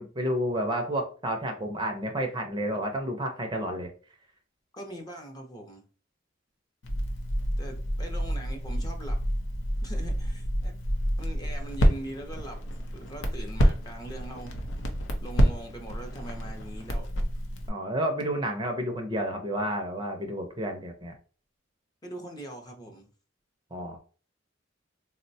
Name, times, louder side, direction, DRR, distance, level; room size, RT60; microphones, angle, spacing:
voice 1, 0.0-3.9 17.7-21.1 23.7-24.0, right 1 dB, 25° right, 3 dB, 0.5 m, -30 dB
voice 2, 4.7-5.9 7.6-9.2 9.8-10.7 11.2-12.7 12.9-14.6 15.2-17.1 22.0-23.1, right 1 dB, 20° left, 2 dB, 0.6 m, -41 dB
Crackle, 6.8-17.7, equal, 85° left, 0.6 m, -28 dB
3.7 x 2.1 x 2.6 m, 0.39 s
head